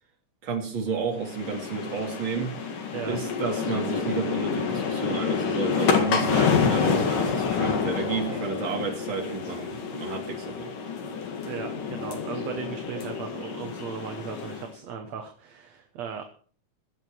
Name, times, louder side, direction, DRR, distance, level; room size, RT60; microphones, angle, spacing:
voice 1, 0.4-2.5 3.0-10.7, right 5 dB, 40° right, 2 dB, 3.1 m, -31 dB
sound 1, 1.2-14.7, left 6 dB, 90° left, 3.7 m, -28 dB
voice 2, 11.4-16.2, right 7 dB, 65° right, 5 dB, 2.3 m, -37 dB
22.5 x 8.2 x 4.6 m, 0.43 s
omnidirectional pair, 3.6 m